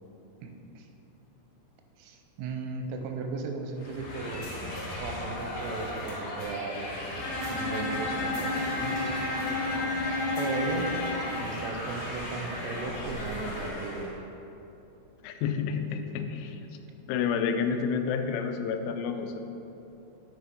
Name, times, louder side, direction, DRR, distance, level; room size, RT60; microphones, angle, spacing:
voice 1, 0.4-0.9 2.0-4.5 5.0-6.9 7.5-9.0 10.4-10.9 11.4-14.1, right 4 dB, 90° right, 4 dB, 3.1 m, -36 dB
sound 1, 3.7-14.2, left 1 dB, 50° left, 2.5 m, -37 dB
Bowed string instrument, 7.2-11.4, left 2 dB, 65° left, 3.0 m, -31 dB
voice 2, 15.2-16.6 17.0-19.4, left 6 dB, 90° left, 6 dB, 3.1 m, -29 dB
8.3 x 4.8 x 5.1 m, 3.0 s
omnidirectional pair, 5.5 m